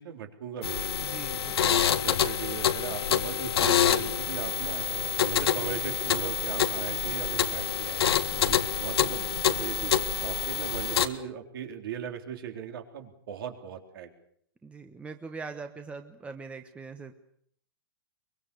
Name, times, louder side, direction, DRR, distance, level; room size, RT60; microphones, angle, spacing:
voice 1, 0.0-0.9 1.6-4.8 5.2-8.0 8.5-14.1, right 8 dB, 70° right, 5 dB, 3.7 m, -38 dB
sound 1, 0.6-11.1, left 9 dB, 85° left, 1.7 m, -27 dB
voice 2, 1.0-1.8 8.3-9.3 14.6-17.1, right 4 dB, 10° right, 6 dB, 1.2 m, -43 dB
23.5 x 23.0 x 6.9 m, 0.65 s
hypercardioid pair, 145°, 13 cm